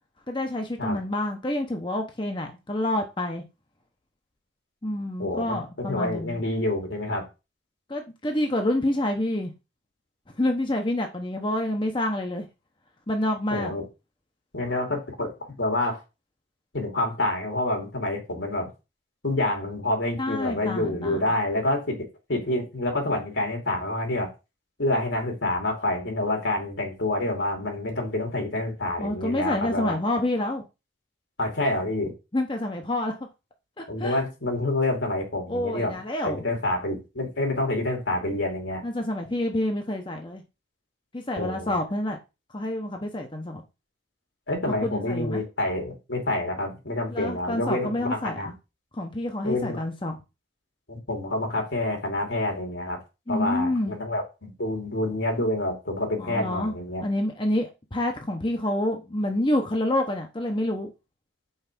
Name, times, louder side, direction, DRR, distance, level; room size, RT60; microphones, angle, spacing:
voice 1, 0.3-3.4 4.8-6.4 7.9-9.5 10.4-12.5 13.1-13.7 20.2-21.2 29.0-30.6 32.3-33.1 33.8-34.2 35.5-36.4 38.8-40.4 41.1-42.2 42.5-43.6 44.8-45.4 47.1-48.5 48.9-50.2 53.3-53.9 56.2-56.7 57.0-60.9, left 1 dB, 25° left, 0.9 m, -28 dB
voice 2, 5.2-7.2 13.5-13.8 14.5-16.0 16.7-18.7 19.2-22.0 22.3-24.3 24.8-30.0 31.4-32.1 33.9-35.9 36.2-38.8 41.4-41.8 44.5-48.5 49.4-49.8 50.9-53.0 53.3-57.0, left 1 dB, 80° left, 2.8 m, -27 dB
5.6 x 4.7 x 6.1 m
head